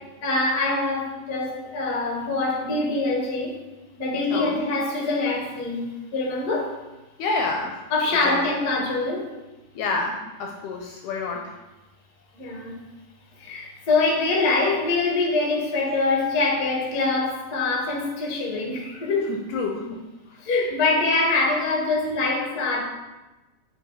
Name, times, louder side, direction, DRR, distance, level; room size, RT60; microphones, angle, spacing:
voice 1, 0.2-3.6 4.0-6.7 7.9-9.3 12.3-12.8 13.4-19.3 20.4-22.8, left 3 dB, 50° left, -1 dB, 1.2 m, -24 dB
voice 2, 4.3-4.7 7.2-7.8 8.3-8.4 9.8-11.6 19.3-20.4, left 3 dB, 75° left, 2 dB, 1.9 m, -29 dB
9.1 x 4.6 x 4.0 m, 1.1 s
omnidirectional pair, 4.0 m